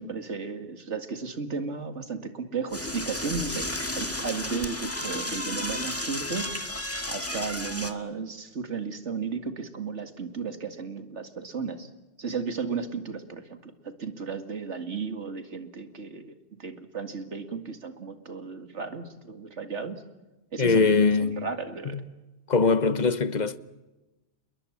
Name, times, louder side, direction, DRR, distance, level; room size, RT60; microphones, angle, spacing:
voice 1, 0.0-3.7 3.9-6.5 7.1-11.9 12.2-16.3 16.6-20.0 20.5-20.9 21.2-22.0, right 5 dB, 80° right, 2.4 m, -34 dB
Door / Toilet flush, 2.7-7.9, left 1 dB, 10° left, 1.8 m, -33 dB
voice 2, 20.6-21.5 21.8-22.0 22.5-23.6, left 4 dB, 40° left, 1.1 m, -22 dB
28.0 x 22.0 x 7.2 m
omnidirectional pair, 1.2 m